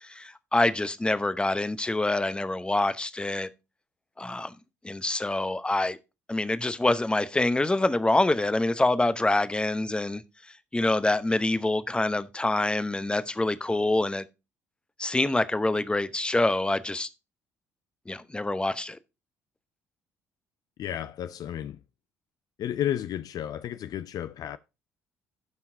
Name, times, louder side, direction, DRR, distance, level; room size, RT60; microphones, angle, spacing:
voice 1, 0.0-3.5 4.2-4.5 4.8-6.0 6.3-10.2 10.7-14.2 15.0-17.1 18.1-19.0, left 2 dB, 10° left, 0.8 m, -26 dB
voice 2, 20.8-21.8 22.6-24.6, left 11 dB, 50° left, 0.4 m, -32 dB
16.5 x 5.6 x 2.7 m
figure-of-eight pair, 50°, 8 cm